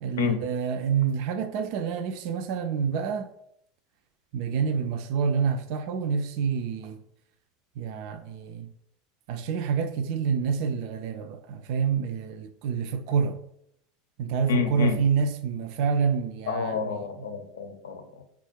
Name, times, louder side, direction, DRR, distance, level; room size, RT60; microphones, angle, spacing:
voice 1, 0.0-3.3 4.3-7.0 7.8-8.7 9.3-13.4 14.2-17.1, right 6 dB, 60° right, 0.3 m, -27 dB
voice 2, 14.5-15.0 16.5-18.2, left 6 dB, 80° left, 0.6 m, -29 dB
4.1 x 2.4 x 4.4 m
hypercardioid pair, 80°, 0 cm